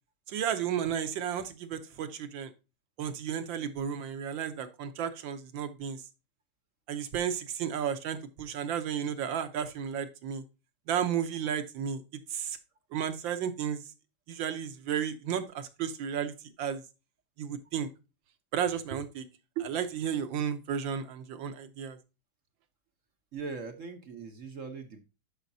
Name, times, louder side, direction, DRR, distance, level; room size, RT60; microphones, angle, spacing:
voice 1, 0.3-2.5 3.0-6.0 6.9-10.4 10.9-12.0 12.3-12.6 12.9-13.8 14.3-16.8 17.4-17.9 18.5-19.2 19.6-22.0, right 8 dB, 70° right, 10 dB, 1.6 m, -33 dB
voice 2, 23.3-25.0, right 4 dB, 55° right, 7 dB, 1.0 m, -40 dB
11.5 x 5.0 x 2.7 m, 0.29 s
omnidirectional pair, 2.2 m